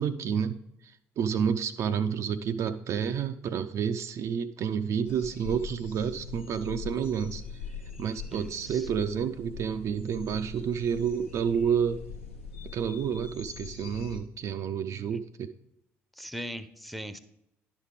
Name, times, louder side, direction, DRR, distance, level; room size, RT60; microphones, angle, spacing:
voice 1, 0.0-7.6 8.0-12.1 12.7-15.5, right 7 dB, 45° right, 9 dB, 0.4 m, -30 dB
sound 1, 5.0-14.2, left 4 dB, 80° left, 0.7 m, -42 dB
voice 2, 8.3-8.9 16.2-17.2, equal, ahead, 14 dB, 0.6 m, -39 dB
11.0 x 5.0 x 3.5 m, 0.84 s
figure-of-eight pair, 50°, 7 cm